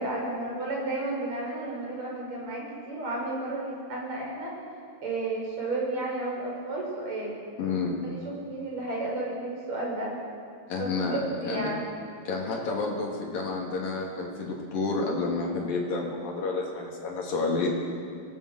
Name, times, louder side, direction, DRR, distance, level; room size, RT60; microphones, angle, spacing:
voice 1, 0.0-4.5 5.0-7.4 8.0-10.1 10.8-11.8, right 2 dB, 50° right, -3 dB, 6.7 m, -32 dB
voice 2, 7.6-8.0 10.7-11.7 12.2-17.7, left 3 dB, 75° left, -2 dB, 4.8 m, -30 dB
25.0 x 18.5 x 6.5 m, 2.2 s
omnidirectional pair, 4.0 m